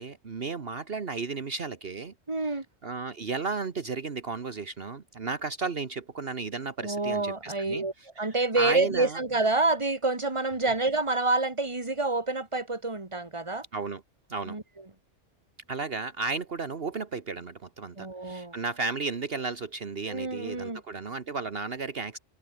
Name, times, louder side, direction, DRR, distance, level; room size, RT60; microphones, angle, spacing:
voice 1, 0.0-2.1 2.4-2.5 2.8-8.3 8.6-9.2 13.7-14.0 14.3-14.6 15.7-22.2, right 4 dB, 55° right, 1.6 m, -34 dB
voice 2, 2.3-2.6 6.8-13.6 14.4-14.6 18.0-18.5 20.1-20.8, right 2 dB, 25° right, 2.4 m, -28 dB
omnidirectional pair, 1.2 m